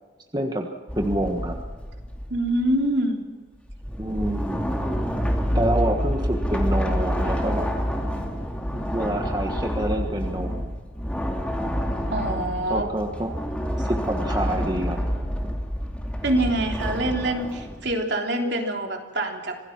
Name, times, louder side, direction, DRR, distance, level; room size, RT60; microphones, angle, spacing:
voice 1, 0.3-0.7 0.9-1.6 3.9-4.8 5.5-7.7 8.7-10.7 12.7-13.3 13.7-15.1, right 1 dB, 20° right, 3 dB, 1.5 m, -27 dB
sound 1, 0.9-2.8 3.7-18.0, equal, 5° left, 2.5 m, -28 dB
voice 2, 2.3-3.2 12.1-12.9 16.2-19.6, right 1 dB, 60° right, 2 dB, 3.4 m, -25 dB
26.5 x 18.0 x 6.1 m, 1.4 s
head